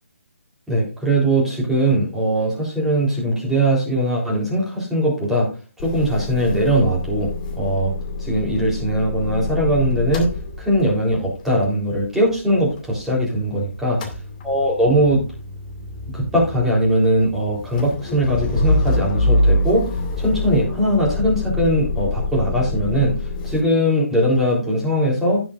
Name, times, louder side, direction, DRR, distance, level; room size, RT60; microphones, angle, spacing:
voice 1, 0.7-5.5 5.8-7.3 7.6-7.9 8.2-10.3 10.6-14.0 14.4-15.2 16.1-19.9 20.2-23.1 23.4-25.4, right 1 dB, 5° right, -4 dB, 3.8 m, -20 dB
Motor vehicle (road) / Engine starting / Idling, 5.8-13.5 13.8-23.6, left 2 dB, 30° left, 2.4 m, -26 dB
16.5 x 6.2 x 2.6 m, 0.34 s
figure-of-eight pair, 150°, 8 cm